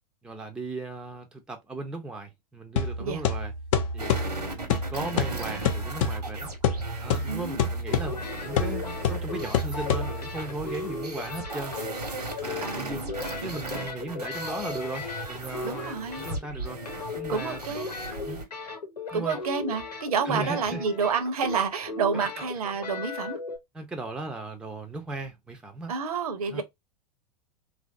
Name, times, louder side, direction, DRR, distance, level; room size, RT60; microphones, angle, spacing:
voice 1, 0.2-3.5 3.9-6.5 7.0-11.7 12.4-13.0 13.4-16.8 17.2-17.8 18.3-18.4 19.1-19.4 20.2-20.8 22.1-22.4 23.7-25.9 26.5-26.6, right 2 dB, 5° right, 0.5 m, -37 dB
sound 1, 2.8-10.5, left 5 dB, 55° left, 0.7 m, -28 dB
sound 2, 4.0-18.4, right 2 dB, 85° right, 1.1 m, -37 dB
voice 2, 7.2-7.7 12.6-13.2 15.6-16.3 17.3-17.9 19.1-23.4 25.9-26.6, right 5 dB, 65° right, 0.8 m, -29 dB
sound 3, 7.9-16.6 16.8-23.6, left 4 dB, 85° left, 0.9 m, -37 dB
3.0 x 2.5 x 2.5 m
figure-of-eight pair, 95°, 20 cm